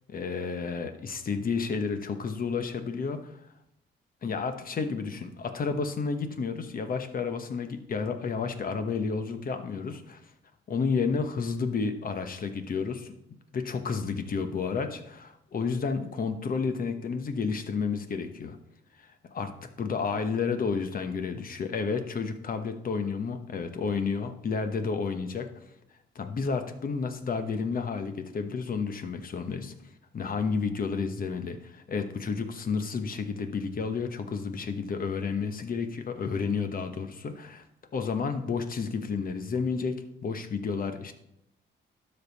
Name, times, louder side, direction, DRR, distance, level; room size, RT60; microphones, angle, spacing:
voice 1, 0.1-3.3 4.2-10.2 10.7-13.1 13.5-18.6 19.0-19.5 19.8-25.5 26.1-29.7 30.1-37.6 37.9-41.1, left 5 dB, 45° left, 8 dB, 1.1 m, -31 dB
12.0 x 5.4 x 4.1 m, 0.83 s
cardioid pair, 90°, 20 cm